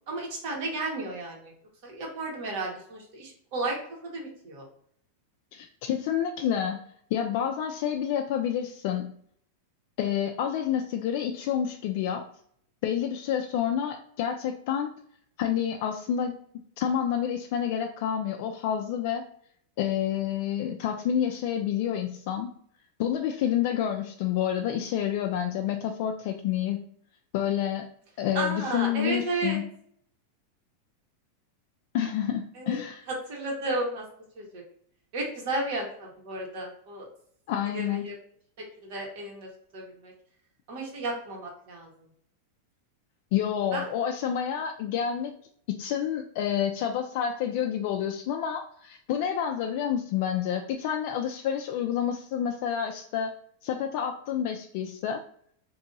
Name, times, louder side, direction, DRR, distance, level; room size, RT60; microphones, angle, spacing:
voice 1, 0.1-1.5 1.8-3.8 4.0-4.7 28.3-29.6 32.5-32.8 33.1-34.0 34.3-34.6 35.1-37.1 37.7-38.2 38.6-40.1 40.7-41.9 43.7-43.9, right 2 dB, 55° right, -1 dB, 1.4 m, -33 dB
voice 2, 5.5-6.8 7.1-9.1 10.0-12.2 12.8-14.9 15.4-16.4 16.8-19.3 19.8-22.5 23.0-26.8 27.3-27.9 28.2-29.6 31.9-33.0 37.5-38.0 43.3-45.3 45.8-53.3 53.6-55.2, left 9 dB, 55° left, 4 dB, 0.3 m, -29 dB
2.7 x 2.6 x 3.8 m, 0.62 s
supercardioid pair, 145°, 0 cm